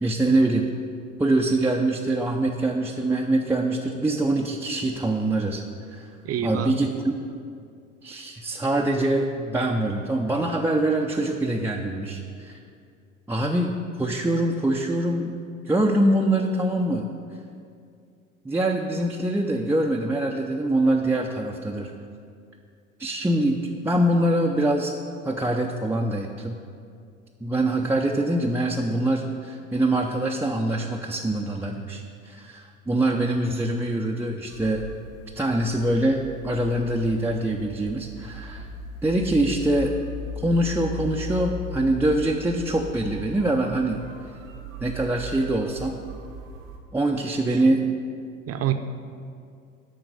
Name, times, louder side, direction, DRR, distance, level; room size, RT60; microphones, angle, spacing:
voice 1, 0.0-0.7 1.2-5.6 5.9-6.1 6.4-7.1 8.0-12.6 13.3-15.4 15.7-17.1 18.4-21.9 23.0-23.6 23.8-24.9 25.2-26.6 27.4-34.9 35.4-38.7 39.0-39.9 40.4-44.1 44.8-45.9 46.9-47.8, right 1 dB, 5° right, -1 dB, 0.5 m, -24 dB
voice 2, 6.2-6.7 38.6-38.7 47.4-47.8 48.5-48.7, right 10 dB, 35° right, 8 dB, 0.7 m, -28 dB
sound 1, 34.5-46.8, left 2 dB, 80° right, 1.1 m, -38 dB
11.5 x 3.9 x 6.6 m, 2.4 s
figure-of-eight pair, 65°, 39 cm